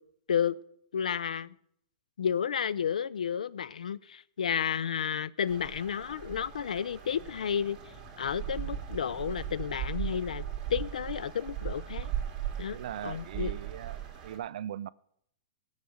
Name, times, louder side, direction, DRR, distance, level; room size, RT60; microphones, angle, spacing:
voice 1, 0.9-1.5 2.2-7.8 8.2-10.5 10.7-12.1 12.6-13.5, left 8 dB, 85° left, 0.5 m, -31 dB
sound 1, 5.4-14.4, right 10 dB, 25° right, 2.8 m, -38 dB
voice 2, 12.7-14.9, right 10 dB, 65° right, 0.5 m, -39 dB
17.0 x 6.5 x 7.1 m
hypercardioid pair, 140°, 4 cm